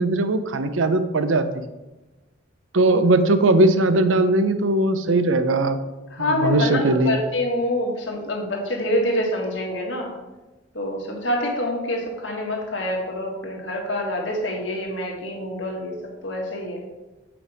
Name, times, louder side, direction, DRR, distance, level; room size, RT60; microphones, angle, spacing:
voice 1, 0.0-1.6 2.7-5.8 6.2-7.2, right 2 dB, 85° right, 10 dB, 0.6 m, -19 dB
voice 2, 6.1-10.1 10.7-16.8, left 1 dB, 75° left, 0 dB, 1.7 m, -26 dB
6.9 x 5.1 x 4.8 m, 1.1 s
head